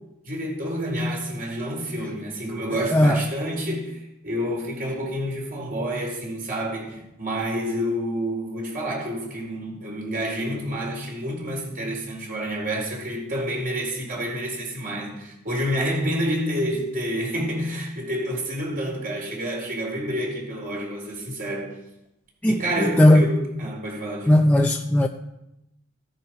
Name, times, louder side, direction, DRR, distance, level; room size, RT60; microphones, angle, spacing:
voice 1, 0.2-21.7 22.4-24.3, equal, 45° right, 4.7 m, -28 dB
voice 2, 24.3-25.1, left 1 dB, 5° left, 0.6 m, -16 dB
16.5 x 10.5 x 5.3 m
head